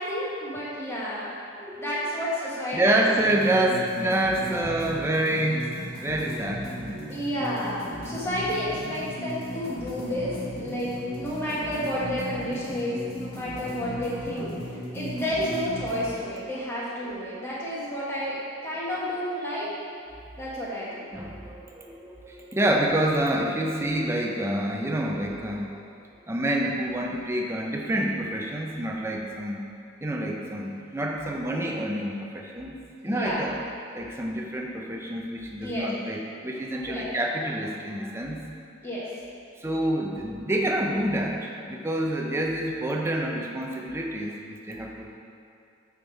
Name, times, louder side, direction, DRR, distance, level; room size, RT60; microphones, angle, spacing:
voice 1, 0.0-1.4 1.8-3.0 7.1-14.5 14.9-19.7 20.4-21.1 33.1-33.4 35.6-35.9 36.9-37.1 38.8-39.0, equal, 10° left, -8 dB, 1.4 m, -31 dB
voice 2, 1.6-2.0 2.7-7.0 21.1-25.8 26.3-29.6 30.0-32.8 33.0-33.6 33.9-38.4 39.6-45.2, right 1 dB, 10° right, 0 dB, 0.5 m, -27 dB
sound 1, 3.2-16.1, left 1 dB, 45° left, 1.3 m, -37 dB
9.0 x 3.6 x 4.5 m, 2.6 s
head